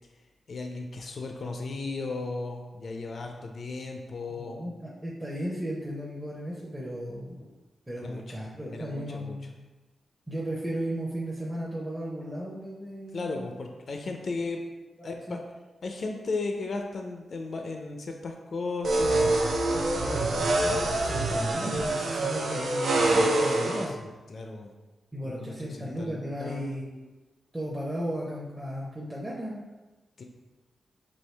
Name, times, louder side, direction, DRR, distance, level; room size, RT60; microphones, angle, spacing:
voice 1, 0.5-4.6 8.0-8.4 8.7-9.4 13.1-14.6 15.0-15.4 15.8-19.4 20.5-20.8 22.9-24.7 25.2-26.7 30.2-30.3, left 3 dB, 60° left, 3 dB, 0.4 m, -36 dB
voice 2, 4.3-7.5 7.9-9.5 10.3-13.5 15.0-15.4 19.9-24.0 25.1-27.1 27.5-29.6, equal, 15° right, -6 dB, 0.7 m, -35 dB
sound 1, 18.8-23.9, right 2 dB, 80° right, 0.5 m, -25 dB
4.4 x 2.7 x 3.2 m, 1.2 s
cardioid pair, 70°, 0 cm